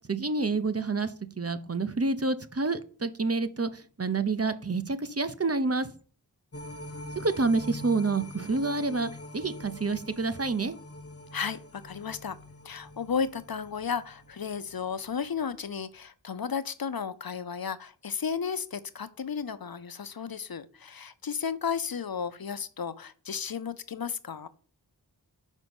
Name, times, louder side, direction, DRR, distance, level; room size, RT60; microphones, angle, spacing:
voice 1, 0.1-1.1 1.4-3.7 4.0-5.9 7.2-10.7, right 3 dB, 35° right, 12 dB, 0.8 m, -28 dB
sound 1, 6.5-14.9 15.3-15.4, left 1 dB, 35° left, 1.1 m, -44 dB
voice 2, 11.3-12.4 12.6-24.5, left 6 dB, 60° left, 14 dB, 0.7 m, -33 dB
6.3 x 5.3 x 7.0 m, 0.42 s
wide cardioid pair, 70°, 41 cm